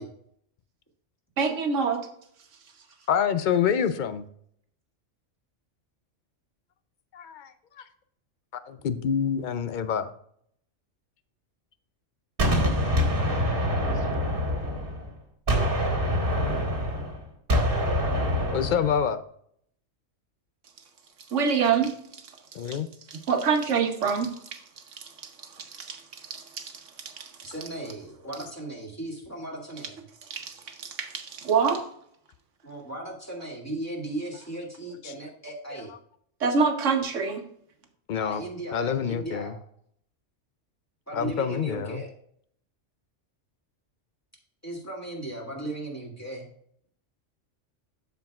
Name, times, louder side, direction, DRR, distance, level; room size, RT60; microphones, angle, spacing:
voice 1, 1.4-2.1 21.3-21.9 23.1-24.6 25.0-26.7 27.0-27.5 30.3-31.9 36.4-37.4, right 5 dB, 70° right, 5 dB, 1.3 m, -26 dB
voice 2, 3.1-4.2 7.1-7.5 8.7-10.1 13.9-14.0 18.5-19.2 22.5-22.9 35.0-35.1 35.7-35.8 38.1-38.4 38.7-39.5 41.1-42.0, left 8 dB, 65° left, 12 dB, 0.5 m, -27 dB
Gunshot gunfire, 12.4-15.1 15.5-19.0, equal, 45° right, 1.6 m, -25 dB
voice 3, 27.4-30.0 32.6-35.9 38.1-39.5 41.1-42.1 44.6-46.5, right 1 dB, 10° left, -3 dB, 1.9 m, -36 dB
13.0 x 4.6 x 2.4 m, 0.66 s
omnidirectional pair, 1.3 m